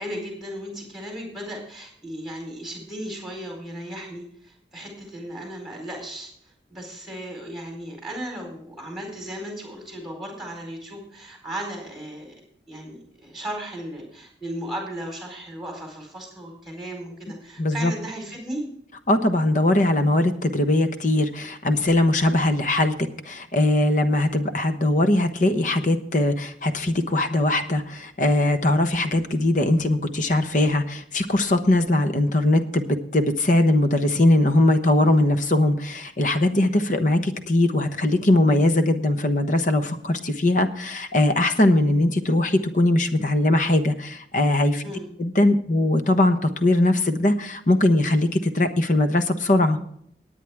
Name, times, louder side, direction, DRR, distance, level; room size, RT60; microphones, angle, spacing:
voice 1, 0.0-6.3 6.7-12.3 12.7-18.6 44.8-45.1, right 1 dB, ahead, 1 dB, 4.3 m, -35 dB
voice 2, 17.6-17.9 19.1-22.9 23.2-44.8 45.2-49.8, left 1 dB, 45° left, 8 dB, 1.1 m, -20 dB
18.5 x 9.2 x 3.6 m, 0.68 s
head